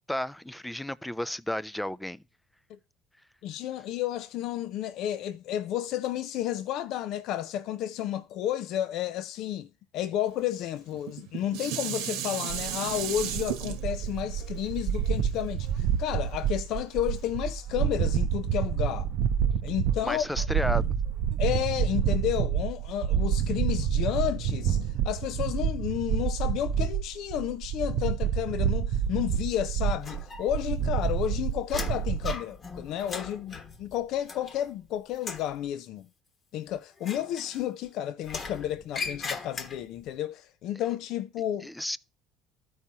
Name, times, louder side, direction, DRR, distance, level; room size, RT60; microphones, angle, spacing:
voice 1, 0.1-2.2 20.0-20.9 41.6-42.0, left 1 dB, 5° left, 0.4 m, -32 dB
voice 2, 3.4-9.7 9.9-19.1 19.6-20.5 21.4-36.1 36.5-41.7, left 11 dB, 65° left, 0.4 m, -32 dB
Dishes pots and pans, 10.9-16.2 16.8-16.9, right 10 dB, 85° right, 1.0 m, -35 dB
sound 1, 12.5-32.3, right 8 dB, 60° right, 0.5 m, -28 dB
sound 2, 30.0-30.8 31.1-34.8 35.1-35.5 37.0-37.9 38.2-40.0, left 4 dB, 35° left, 1.1 m, -39 dB
13.0 x 4.7 x 2.8 m
cardioid pair, 115°, 0 cm